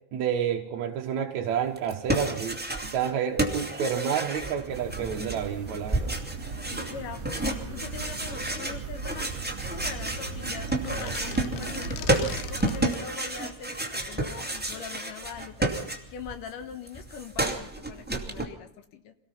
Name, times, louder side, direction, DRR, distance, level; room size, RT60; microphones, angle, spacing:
voice 1, 0.1-6.2, right 8 dB, 60° right, 2 dB, 2.0 m, -29 dB
sound 1, 1.8-3.1 3.4-16.3 16.6-18.5, right 2 dB, 5° right, 1.2 m, -31 dB
sound 2, 4.7-12.9, right 4 dB, 40° right, 4.3 m, -38 dB
voice 2, 6.7-9.3 9.7-15.7 16.1-19.2, left 7 dB, 65° left, 9 dB, 2.5 m, -42 dB
sound 3, 10.7-13.1, left 11 dB, 85° left, 3.0 m, -41 dB
26.0 x 18.0 x 5.8 m, 0.75 s
omnidirectional pair, 4.6 m